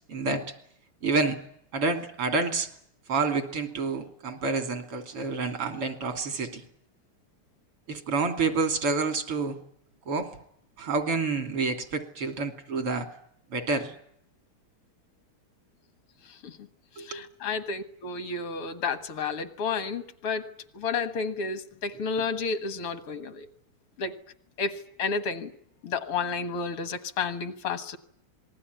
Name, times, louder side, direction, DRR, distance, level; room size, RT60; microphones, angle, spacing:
voice 1, 0.1-0.5 1.0-1.4 1.7-2.7 3.1-6.6 7.9-9.6 10.1-10.3 10.8-13.1 13.5-14.0 17.0-17.2, right 4 dB, 85° right, 3.8 m, -28 dB
voice 2, 16.3-16.7 17.0-23.5 24.0-24.2 24.6-25.5 25.8-28.0, left 5 dB, 80° left, 2.5 m, -31 dB
26.5 x 20.5 x 9.5 m
omnidirectional pair, 2.4 m